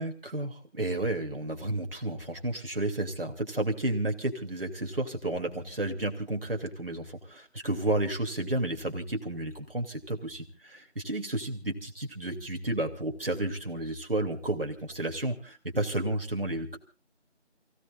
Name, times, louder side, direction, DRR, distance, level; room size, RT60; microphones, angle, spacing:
voice 1, 0.0-16.8, right 1 dB, 50° right, 3 dB, 3.1 m, -32 dB
29.5 x 17.0 x 2.5 m, 0.38 s
figure-of-eight pair, 175°, 36 cm